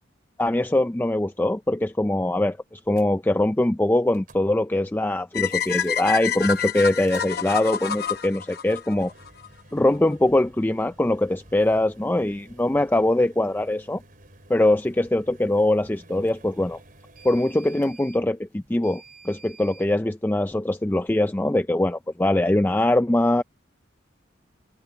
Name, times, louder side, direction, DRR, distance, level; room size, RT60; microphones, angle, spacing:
voice 1, 0.4-9.1 9.7-14.0 14.5-16.8 17.2-23.4, left 1 dB, 10° left, 0.4 m, -22 dB
sound 1, 2.9-3.1 4.1-4.5 5.4-6.1 6.5-7.3 8.9-19.9, right 2 dB, 45° right, 3.9 m, -51 dB
sound 2, 5.3-9.5, left 8 dB, 50° left, 0.8 m, -28 dB
head